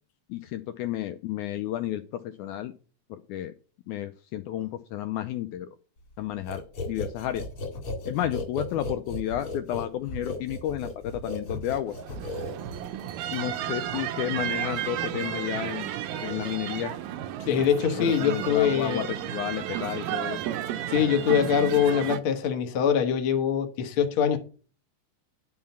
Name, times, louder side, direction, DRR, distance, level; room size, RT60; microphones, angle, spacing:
voice 1, 0.3-2.7 3.1-3.5 3.9-5.7 6.2-7.4 8.0-11.9 13.3-15.9 16.2-16.9 18.0-20.4, left 12 dB, 80° left, 1.8 m, -32 dB
sound 1, 6.5-13.0, left 2 dB, 45° left, 2.6 m, -35 dB
sound 2, 11.9-22.2, right 11 dB, 85° right, 2.4 m, -33 dB
voice 2, 17.4-19.0 20.9-24.4, left 8 dB, 60° left, 1.5 m, -23 dB
10.5 x 3.8 x 7.0 m
omnidirectional pair, 3.8 m